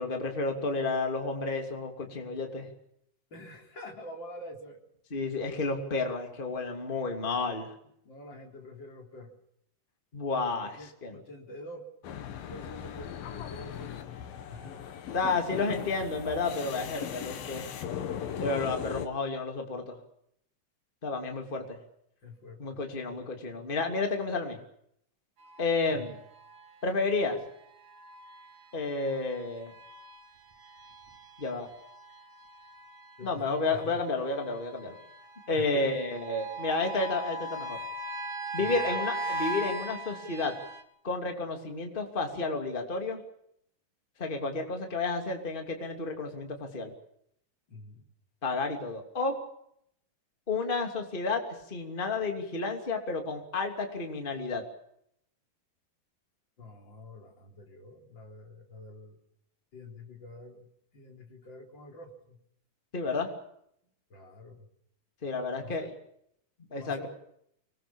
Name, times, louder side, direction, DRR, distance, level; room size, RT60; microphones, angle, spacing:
voice 1, 0.0-2.7 5.1-7.7 10.1-10.8 11.0-11.1 15.1-17.7 18.4-20.0 21.0-21.8 22.6-24.6 25.6-26.2 26.8-27.4 28.7-29.7 31.4-31.7 33.2-35.0 35.5-37.8 38.5-40.6 41.0-43.2 44.2-46.9 48.4-49.4 50.5-54.6 62.9-63.3 65.2-65.9 66.7-67.1, left 3 dB, 15° left, 4 dB, 2.6 m, -31 dB
voice 2, 3.3-4.8 8.0-9.4 10.6-11.9 12.5-14.9 21.6-21.7 22.2-23.0 25.9-26.1 33.2-34.0 35.5-36.1 38.6-38.8 47.7-48.1 56.6-59.2 59.7-62.4 64.1-64.7 65.6-65.9 66.8-67.1, left 1 dB, 30° left, 2 dB, 4.4 m, -47 dB
sound 1, 12.0-19.1, left 9 dB, 80° left, 3.3 m, -38 dB
sound 2, 25.4-40.8, right 2 dB, 55° right, 3.5 m, -40 dB
25.0 x 20.5 x 7.1 m, 0.73 s
omnidirectional pair, 4.0 m